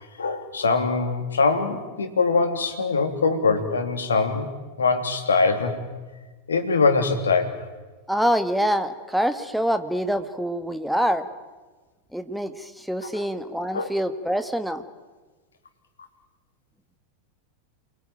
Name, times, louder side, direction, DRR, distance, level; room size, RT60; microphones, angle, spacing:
voice 1, 0.2-4.5 4.8-5.8 6.5-7.6 13.1-13.2 13.7-13.9, left 4 dB, 70° left, 6 dB, 3.3 m, -22 dB
voice 2, 8.1-11.3 12.1-14.8, equal, ahead, 10 dB, 1.8 m, -25 dB
28.5 x 21.5 x 9.4 m, 1.3 s
figure-of-eight pair, 90°, 0 cm